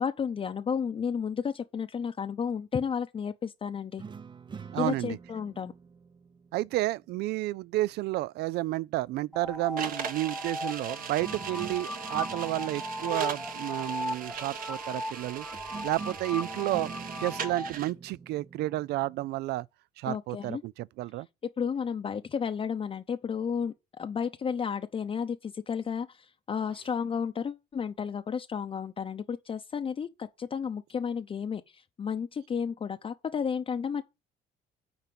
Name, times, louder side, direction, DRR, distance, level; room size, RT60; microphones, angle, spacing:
voice 1, 0.0-4.0 4.8-5.7 20.1-20.6 21.6-34.0, left 6 dB, 30° left, 0.7 m, -32 dB
sound 1, 4.0-7.4 11.2-14.6 15.5-19.4, right 5 dB, 25° right, 0.6 m, -46 dB
voice 2, 4.7-5.2 6.5-15.5 15.8-16.9 17.2-19.7 20.0-21.3, right 17 dB, 75° right, 0.4 m, -31 dB
sound 2, 9.3-17.7, left 1 dB, 5° left, 0.8 m, -37 dB
sound 3, 9.8-17.9, right 8 dB, 55° right, 1.4 m, -39 dB
9.4 x 4.4 x 6.9 m
cardioid pair, 110°, 17 cm